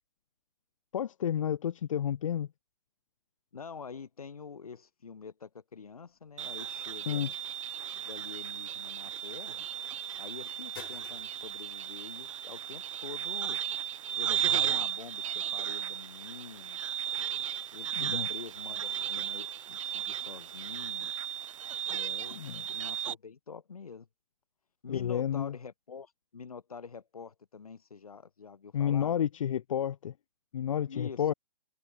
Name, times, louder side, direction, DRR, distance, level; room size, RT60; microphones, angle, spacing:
voice 1, 0.9-2.5 7.1-7.3 18.0-18.3 22.3-22.6 24.9-25.5 28.7-30.1 30.5-31.3, left 9 dB, 65° left, 0.9 m, -31 dB
voice 2, 3.5-7.3 7.9-9.6 10.2-13.6 14.1-16.8 17.7-21.1 21.9-24.1 24.8-29.1 30.9-31.3, left 5 dB, 90° left, 1.1 m, -46 dB
sound 1, 6.0-16.0, left 19 dB, 40° left, 2.4 m, -60 dB
sound 2, 6.4-23.1, right 10 dB, 60° right, 0.9 m, -35 dB
hypercardioid pair, 135°, 18 cm